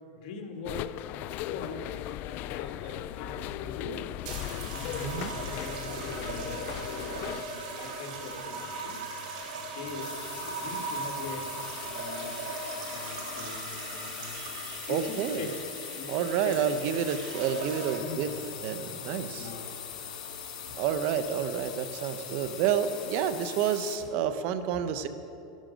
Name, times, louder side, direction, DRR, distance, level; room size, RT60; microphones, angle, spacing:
voice 1, 0.1-1.9 2.2-4.1 4.5-6.6 7.0-9.0 9.6-10.2 10.4-11.5 11.9-14.5 14.9-15.6 16.0-16.6 17.9-18.4 19.3-20.2 22.3-22.4 24.7-24.8, left 4 dB, 65° left, 4 dB, 1.7 m, -42 dB
sound 1, 0.6-7.4, left 14 dB, 45° left, 0.3 m, -37 dB
sound 2, 4.2-18.3 19.1-19.5, right 3 dB, 75° right, 3.2 m, -39 dB
sound 3, 10.0-24.0, left 8 dB, 80° left, 2.8 m, -41 dB
voice 2, 14.3-15.5 16.1-18.3 18.6-19.5 20.8-25.1, right 8 dB, 55° right, 11 dB, 0.8 m, -29 dB
13.0 x 12.5 x 5.2 m, 2.7 s
supercardioid pair, 135°, 4 cm